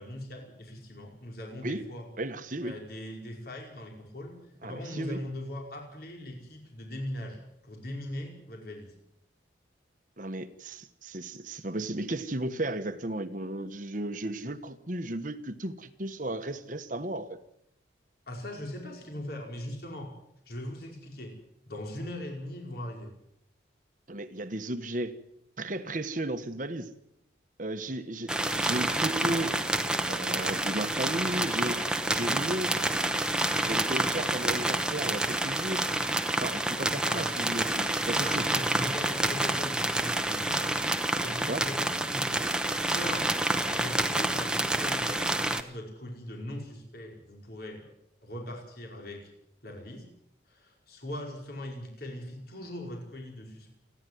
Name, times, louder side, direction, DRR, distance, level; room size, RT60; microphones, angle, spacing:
voice 1, 0.0-2.1 2.6-4.3 4.6-8.9 18.3-20.1 20.4-21.3 21.7-23.1 37.0-37.3 38.2-40.8 41.2-42.5 42.8-43.3 43.7-47.9 48.2-49.3 49.6-50.1 50.5-53.7, left 1 dB, 55° left, 5.1 m, -40 dB
voice 2, 2.2-2.8 4.6-5.2 10.2-17.4 24.1-25.2 25.6-26.9 27.6-29.6 30.0-32.9 33.6-35.9 36.4-38.5 41.5-41.7, right 1 dB, 45° right, 1.3 m, -34 dB
sound 1, 28.3-45.6, right 1 dB, 5° right, 1.1 m, -28 dB
29.0 x 11.0 x 9.6 m
head